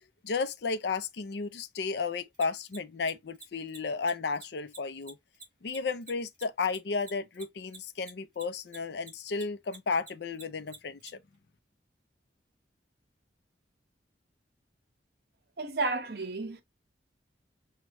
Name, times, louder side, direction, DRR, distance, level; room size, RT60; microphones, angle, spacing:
voice 1, 0.2-5.2 5.6-11.2, left 4 dB, 65° left, 0.5 m, -33 dB
Mechanisms, 2.3-9.1 9.3-11.1, right 4 dB, 25° right, 2.4 m, -47 dB
voice 2, 15.6-16.6, right 3 dB, 55° right, 0.8 m, -32 dB
6.1 x 2.2 x 2.9 m
head